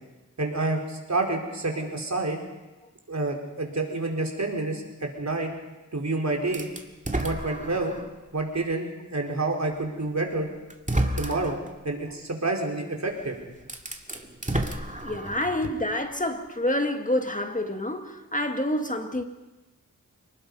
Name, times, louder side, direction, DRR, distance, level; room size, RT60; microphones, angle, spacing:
voice 1, 0.4-2.4 3.1-5.5 5.9-6.7 7.2-7.9 8.3-10.5 11.2-11.6 11.8-13.4, right 2 dB, 55° right, 4.5 m, -28 dB
sound 1, 6.5-8.2 8.7-8.8 10.0-10.1 10.7-11.7 13.1-13.2 13.6-15.6, right 1 dB, 25° right, 2.4 m, -30 dB
voice 2, 15.0-19.2, left 1 dB, 25° left, 1.9 m, -28 dB
29.0 x 19.5 x 5.5 m
wide cardioid pair, 55°, 33 cm